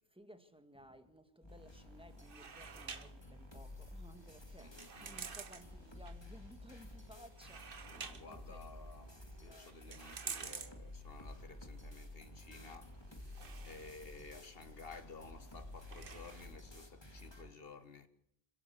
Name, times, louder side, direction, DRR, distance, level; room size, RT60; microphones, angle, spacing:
voice 1, 0.1-8.7 9.5-9.7 13.4-13.6 16.5-16.6, equal, 5° right, 1.8 m, -58 dB
sound 1, 1.4-17.5, left 1 dB, 25° left, 2.4 m, -53 dB
sound 2, 1.5-16.5, right 5 dB, 55° right, 1.3 m, -52 dB
voice 2, 4.6-5.2 7.8-18.1, left 4 dB, 60° left, 1.8 m, -54 dB
26.0 x 17.0 x 6.9 m
omnidirectional pair, 1.1 m